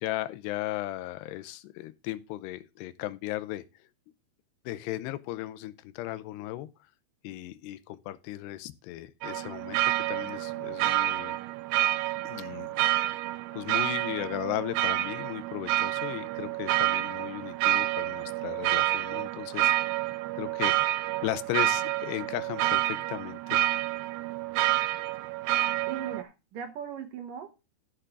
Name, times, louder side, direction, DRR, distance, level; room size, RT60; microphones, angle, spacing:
voice 1, 0.0-3.6 4.7-6.7 7.2-11.4 12.2-12.7 13.2-13.3 13.5-20.0 20.4-20.9 21.2-23.7, left 15 dB, 85° left, 2.8 m, -36 dB
sound 1, 9.2-26.2, right 15 dB, 85° right, 2.8 m, -28 dB
voice 2, 25.9-27.5, right 8 dB, 65° right, 2.7 m, -38 dB
13.0 x 6.8 x 3.7 m
omnidirectional pair, 4.8 m